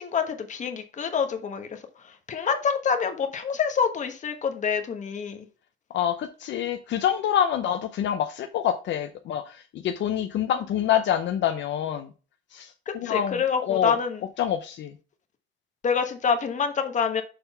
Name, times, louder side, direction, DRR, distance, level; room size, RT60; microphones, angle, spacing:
voice 1, 0.0-1.8 2.3-5.5 12.9-14.2 15.8-17.2, left 6 dB, 35° left, 1.2 m, -26 dB
voice 2, 5.9-12.1 12.5-14.0 14.4-15.0, left 10 dB, 65° left, 0.6 m, -26 dB
6.8 x 3.8 x 5.5 m
cardioid pair, 160°, 21 cm